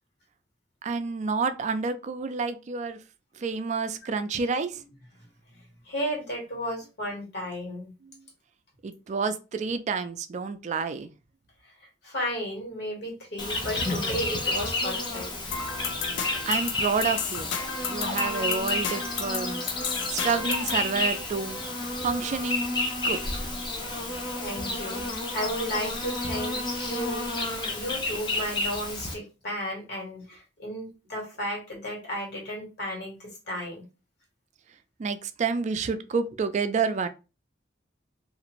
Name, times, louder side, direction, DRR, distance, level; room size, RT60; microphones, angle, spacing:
voice 1, 0.8-3.0 3.3-4.8 8.0-8.2 8.8-11.1 16.5-17.5 17.9-19.6 20.1-21.6 22.0-22.7 23.0-23.2 35.0-37.1, right 5 dB, 40° right, 11 dB, 0.3 m, -29 dB
voice 2, 5.8-7.9 11.6-11.7 12.0-15.3 24.3-25.1 25.3-33.9, equal, 60° left, -1 dB, 1.4 m, -34 dB
Insect, 13.4-29.1, left 2 dB, 25° left, 0.5 m, -31 dB
sound 1, 15.5-20.8, left 6 dB, 85° left, 0.4 m, -33 dB
2.5 x 2.5 x 2.9 m, 0.30 s
head